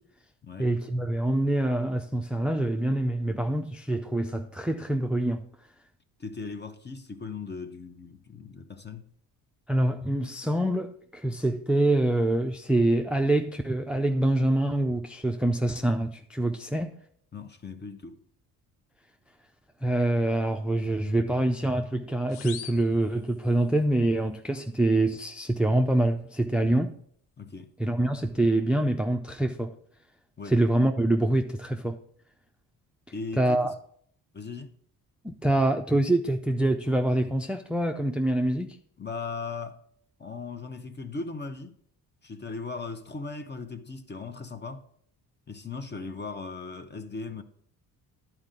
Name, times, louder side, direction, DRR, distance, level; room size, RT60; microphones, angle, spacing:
voice 1, 0.6-5.4 9.7-16.9 19.8-26.9 27.8-29.7 30.5-32.0 33.4-33.7 35.2-38.8, right 1 dB, 5° right, 0.4 m, -25 dB
voice 2, 6.2-9.1 17.3-18.2 27.4-27.7 30.4-30.5 33.1-33.7 34.3-34.7 39.0-39.8 40.2-41.7 42.2-44.8 45.5-47.4, left 4 dB, 25° left, 0.9 m, -38 dB
sound 1, 22.3-23.8, left 8 dB, 85° left, 0.7 m, -44 dB
10.5 x 4.5 x 3.7 m
supercardioid pair, 65°, 40 cm